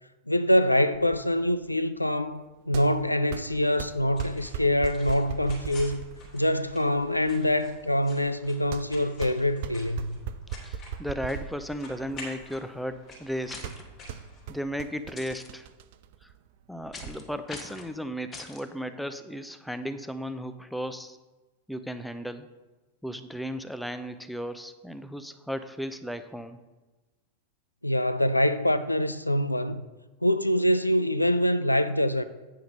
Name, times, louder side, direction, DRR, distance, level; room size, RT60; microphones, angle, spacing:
voice 1, 0.3-6.0 6.3-10.2 27.8-29.9 30.2-32.2, left 1 dB, 85° left, 0.4 m, -25 dB
sound 1, 0.9-17.1, right 9 dB, 50° right, 0.5 m, -40 dB
sound 2, 3.7-15.0, left 2 dB, 35° left, 3.2 m, -49 dB
voice 2, 10.6-13.7 14.5-15.7 16.2-16.3 16.7-21.2 21.7-22.5 23.0-26.6, equal, ahead, 0.5 m, -35 dB
sound 3, 13.5-13.8 15.2-15.5 16.9-17.2 17.5-17.9 18.3-18.6, left 3 dB, 20° left, 1.2 m, -42 dB
8.6 x 5.7 x 5.3 m
figure-of-eight pair, 90°, 0 cm